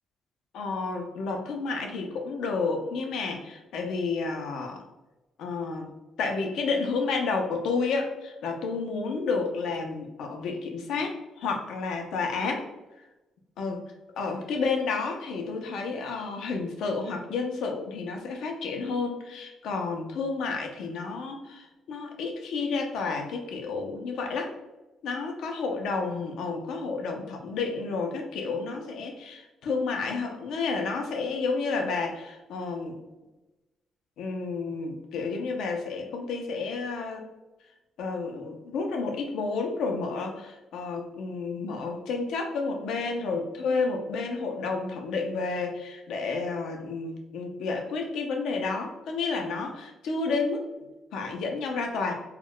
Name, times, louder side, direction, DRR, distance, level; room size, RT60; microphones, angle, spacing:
voice 1, 0.5-4.8 5.4-5.9 6.2-12.7 13.6-13.8 14.2-24.5 25.0-33.0 34.2-37.2 38.0-52.1, left 4 dB, 80° left, 2 dB, 0.5 m, -31 dB
2.3 x 2.1 x 3.6 m, 1.0 s
cardioid pair, 90°, 0 cm